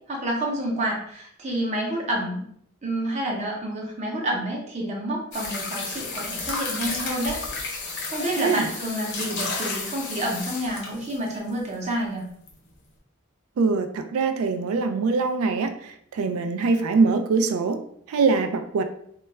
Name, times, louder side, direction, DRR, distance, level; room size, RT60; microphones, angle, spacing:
voice 1, 0.1-2.4 2.8-7.4 7.8-12.2, right 1 dB, 30° right, -1 dB, 0.6 m, -29 dB
sound 1, 5.3-11.5 12.5-12.6, left 3 dB, 55° left, 0.6 m, -32 dB
voice 2, 8.3-8.7 13.6-18.8, right 4 dB, 75° right, 8 dB, 0.3 m, -23 dB
2.2 x 2.0 x 3.2 m, 0.67 s
head